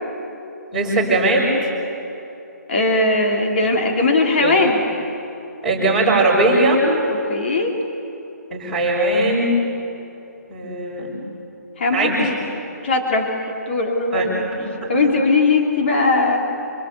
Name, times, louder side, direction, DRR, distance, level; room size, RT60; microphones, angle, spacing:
voice 1, 0.7-1.5 4.4-4.5 5.6-6.8 8.5-9.5 10.5-11.2 11.9-12.3 14.1-14.2 14.5-15.1, right 2 dB, ahead, -10 dB, 5.6 m, -19 dB
voice 2, 2.7-4.8 7.1-7.7 11.8-12.4 12.8-14.4 14.9-16.4, left 3 dB, 40° left, 1 dB, 3.5 m, -19 dB
26.0 x 25.0 x 8.4 m, 2.9 s
hypercardioid pair, 170°, 10 cm